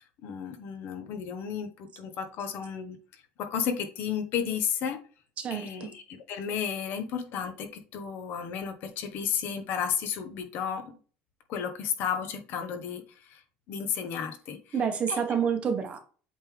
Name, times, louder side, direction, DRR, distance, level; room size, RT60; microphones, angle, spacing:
voice 1, 0.0-5.0 5.5-10.9 11.5-13.4 13.7-14.8 15.1-15.5, left 7 dB, 45° left, 7 dB, 1.0 m, -33 dB
voice 2, 5.4-5.9 14.7-16.0, right 7 dB, 25° right, 6 dB, 1.0 m, -28 dB
7.9 x 3.6 x 3.4 m, 0.38 s
cardioid pair, 175°, 5 cm